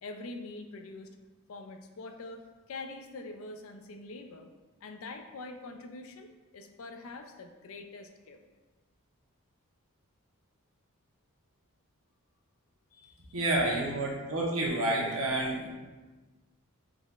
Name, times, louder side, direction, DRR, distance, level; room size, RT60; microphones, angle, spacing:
voice 1, 0.0-1.1 1.5-4.5 4.8-8.4 12.9-14.2, left 3 dB, 65° left, 6 dB, 0.4 m, -44 dB
voice 2, 13.3-15.7, right 1 dB, 75° right, -2 dB, 0.9 m, -29 dB
3.9 x 2.3 x 4.0 m, 1.2 s
head